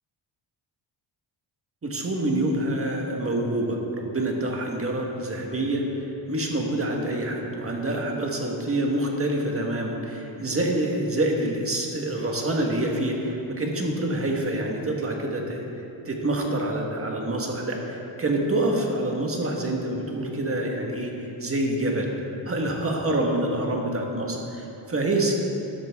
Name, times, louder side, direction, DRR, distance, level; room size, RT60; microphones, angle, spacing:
voice 1, 1.8-22.1 22.4-25.3, right 1 dB, 30° right, 0 dB, 1.5 m, -27 dB
13.5 x 12.0 x 3.6 m, 2.9 s
wide cardioid pair, 150°, 48 cm